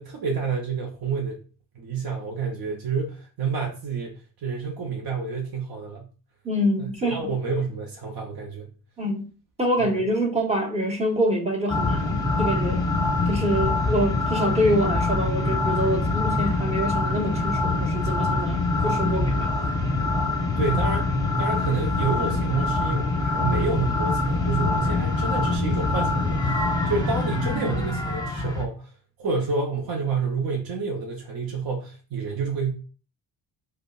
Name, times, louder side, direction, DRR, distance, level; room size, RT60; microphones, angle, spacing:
voice 1, 0.0-1.4 1.7-6.1 6.8-8.7 9.8-10.0 16.0-16.1 20.6-21.1 21.4-28.9 29.2-32.7, right 4 dB, 50° right, 0.8 m, -29 dB
voice 2, 6.4-7.3 9.0-9.3 9.6-12.8 13.3-19.5, equal, 15° right, 1.1 m, -25 dB
sound 1, 11.7-28.6, left 2 dB, 10° left, 0.9 m, -24 dB
4.8 x 2.2 x 2.4 m
cardioid pair, 70°, 46 cm